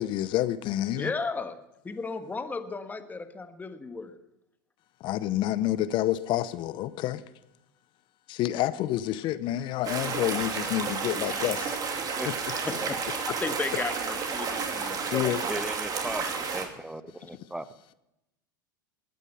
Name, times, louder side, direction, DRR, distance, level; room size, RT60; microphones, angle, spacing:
voice 1, 0.0-1.1 5.0-7.2 8.3-11.8 15.1-15.4, left 13 dB, 45° left, 0.8 m, -28 dB
voice 2, 0.9-1.6 1.8-4.2 11.4-11.5 12.5-13.0 13.4-15.3, left 4 dB, 15° left, 1.4 m, -34 dB
sound 1, 9.8-16.7, right 5 dB, 35° right, 2.7 m, -31 dB
voice 3, 15.5-17.7, right 1 dB, 5° right, 0.9 m, -36 dB
20.5 x 9.2 x 5.5 m
hypercardioid pair, 85°, 11 cm